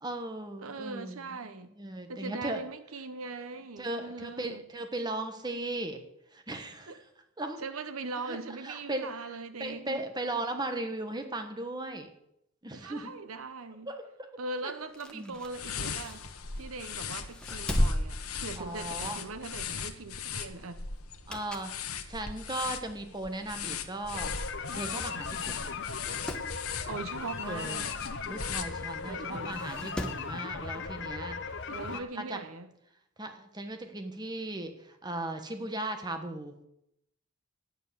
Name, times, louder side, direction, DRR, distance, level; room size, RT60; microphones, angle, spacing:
voice 1, 0.0-2.6 3.8-6.0 6.3-7.0 7.4-7.6 8.3-8.4 8.6-12.1 12.6-13.1 13.9-14.3 15.1-15.3 18.6-19.2 21.3-21.7 22.1-24.3 24.7-25.8 27.5-27.9 28.3-31.4 31.7-32.4 33.2-36.5, right 2 dB, 20° right, 1.2 m, -37 dB
voice 2, 0.6-1.7 2.1-4.6 6.9-7.0 7.6-10.0 12.7-13.9 14.4-16.2 16.5-20.8 26.9-27.9 29.0-29.7 31.7-32.7, right 3 dB, 75° right, 0.9 m, -40 dB
sound 1, 14.8-16.8 17.2-19.1 19.5-19.7 21.0-21.8 22.3-22.4 23.3-23.4 23.6-23.7 23.9-24.0 24.8-25.0 25.3-25.4 25.8-26.5 28.4-28.5 29.5-30.3 31.6-31.7, equal, 5° left, 1.2 m, -35 dB
sound 2, 15.5-29.2, left 7 dB, 85° left, 1.2 m, -39 dB
sound 3, 24.1-32.0, left 5 dB, 55° left, 0.9 m, -38 dB
11.0 x 9.1 x 6.9 m
head